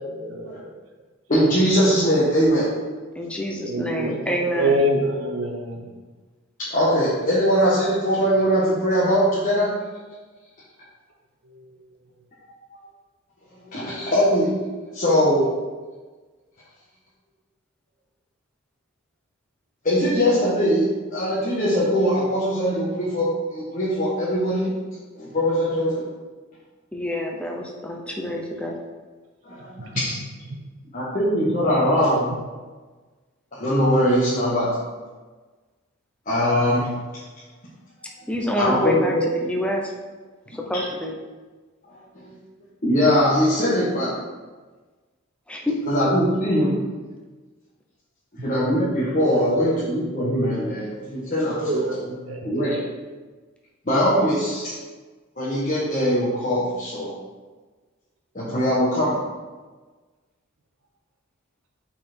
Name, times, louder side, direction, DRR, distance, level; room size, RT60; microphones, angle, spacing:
voice 1, 0.1-0.5 3.6-4.2 4.6-5.8 29.9-30.0 49.3-49.5 51.5-52.0 52.3-52.5, right 1 dB, 70° right, 2 dB, 0.9 m, -25 dB
voice 2, 1.3-2.7 6.7-9.8 13.7-14.5 14.9-15.5 19.8-24.7 25.1-26.0 29.4-29.6 29.9-30.2 30.9-32.3 33.5-34.7 36.3-36.9 38.6-39.2 40.7-40.8 42.1-42.3 42.8-44.1 45.9-46.8 48.4-52.8 53.9-54.8 55.4-57.1 58.3-59.2, equal, 40° left, -10 dB, 1.3 m, -21 dB
voice 3, 3.1-4.8 26.9-28.8 38.3-39.9 40.5-41.2 45.5-45.9, equal, 5° left, 0 dB, 0.6 m, -27 dB
5.8 x 4.2 x 4.4 m, 1.3 s
head